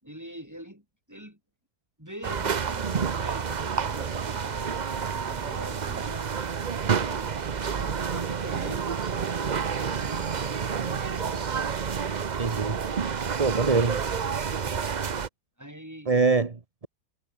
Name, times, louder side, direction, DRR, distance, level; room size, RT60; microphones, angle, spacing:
voice 1, 0.0-1.4 2.0-6.6 6.9-11.5 15.6-16.2, equal, 10° right, 7.1 m, -44 dB
sound 1, 2.2-15.3, right 6 dB, 45° right, 0.5 m, -29 dB
voice 2, 12.4-12.8 13.4-14.1 16.1-16.9, right 4 dB, 25° right, 1.0 m, -24 dB
omnidirectional pair, 1.9 m